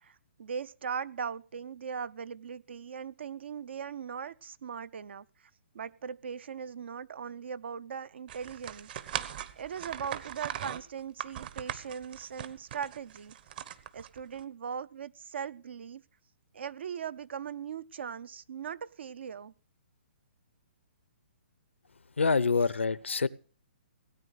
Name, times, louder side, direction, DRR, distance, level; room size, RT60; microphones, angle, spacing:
voice 1, 0.0-9.2 9.6-13.3 13.9-16.0 16.5-19.5, right 7 dB, 65° right, 0.6 m, -39 dB
sound 1, 8.3-14.4, right 10 dB, 50° right, 1.1 m, -40 dB
voice 2, 22.2-23.3, left 4 dB, 90° left, 0.7 m, -26 dB
17.5 x 9.2 x 6.3 m
hypercardioid pair, 135°, 6 cm